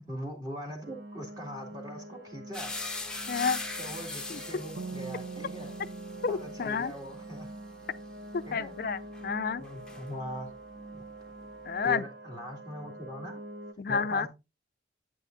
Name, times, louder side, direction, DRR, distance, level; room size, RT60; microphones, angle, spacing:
voice 1, 0.1-2.8 3.8-5.7 6.3-7.5 8.5-8.7 9.6-10.5 10.9-11.0 11.8-13.4 13.9-14.3, equal, 20° right, 2.1 m, -41 dB
sound 1, 0.8-13.7, right 2 dB, 60° right, 0.9 m, -45 dB
sound 2, 2.5-10.5 10.8-11.9, left 3 dB, 5° left, 1.0 m, -42 dB
voice 2, 3.3-3.6 4.3-4.4 6.2-6.9 8.3-9.6 11.7-12.0 13.8-14.3, left 5 dB, 50° left, 0.4 m, -30 dB
sound 3, 4.8-8.0, right 4 dB, 75° right, 0.5 m, -44 dB
9.9 x 9.2 x 2.6 m
head